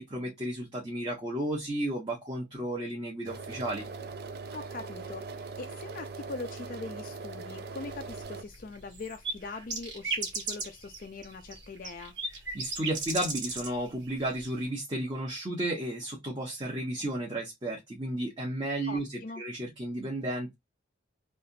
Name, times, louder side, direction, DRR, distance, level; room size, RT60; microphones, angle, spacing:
voice 1, 0.0-3.9 12.5-19.1 19.4-20.5, right 1 dB, 25° right, 0.9 m, -33 dB
sound 1, 3.3-8.4, right 4 dB, 55° right, 0.4 m, -41 dB
voice 2, 4.5-12.1 18.9-19.4, left 3 dB, 45° left, 0.4 m, -42 dB
sound 2, 7.8-13.7 14.0-14.7, right 3 dB, 70° right, 1.5 m, -36 dB
3.3 x 2.4 x 2.7 m
head